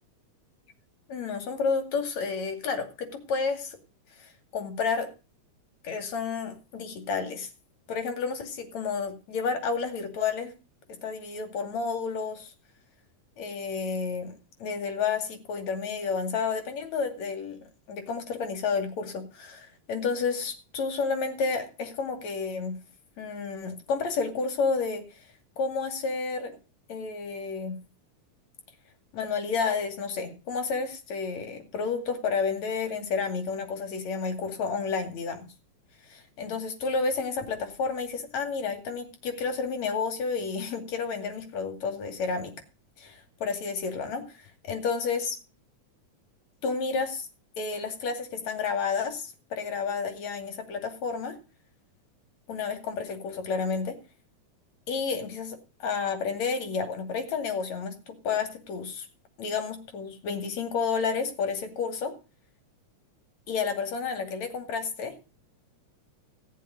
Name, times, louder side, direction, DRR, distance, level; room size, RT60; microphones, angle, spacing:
voice 1, 1.1-3.8 4.2-5.1 5.8-7.5 7.9-10.5 11.0-12.5 13.4-14.3 14.6-17.6 17.9-22.8 23.2-25.0 25.6-26.5 26.9-27.8 29.1-35.5 36.1-42.5 43.0-45.4 46.6-47.3 47.6-51.4 52.5-54.0 54.9-59.1 59.4-62.1 63.5-65.1, left 5 dB, 65° left, 5 dB, 3.7 m, -31 dB
16.5 x 7.6 x 5.3 m, 0.32 s
omnidirectional pair, 3.4 m